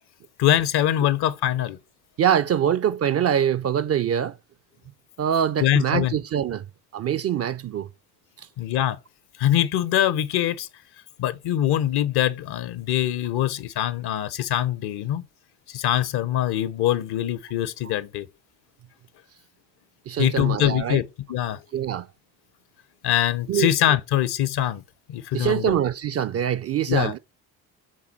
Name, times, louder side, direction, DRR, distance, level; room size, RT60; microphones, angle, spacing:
voice 1, 0.4-1.8 5.6-6.2 8.6-9.0 9.4-10.7 11.2-15.2 15.7-18.3 20.2-21.6 23.0-24.8 25.1-25.8 26.9-27.1, left 12 dB, 55° left, 0.7 m, -23 dB
voice 2, 2.2-4.4 5.2-6.7 6.9-7.9 8.4-8.5 17.8-17.9 20.1-21.0 21.7-22.1 23.5-23.7 25.3-27.2, right 9 dB, 35° right, 0.4 m, -24 dB
7.5 x 3.7 x 4.2 m
hypercardioid pair, 50°, 48 cm